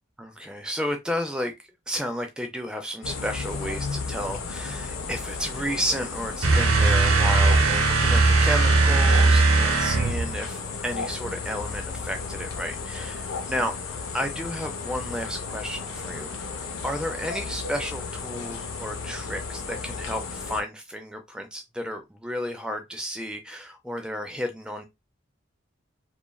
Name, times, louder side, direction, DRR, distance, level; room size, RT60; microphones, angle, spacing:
voice 1, 0.2-1.5 1.9-13.7 14.1-16.3 16.8-24.9, equal, 5° right, 0.4 m, -32 dB
sound 1, 3.0-20.6, left 4 dB, 75° left, 0.6 m, -34 dB
sound 2, 6.4-10.4, right 3 dB, 80° right, 0.7 m, -19 dB
2.9 x 2.4 x 2.2 m
head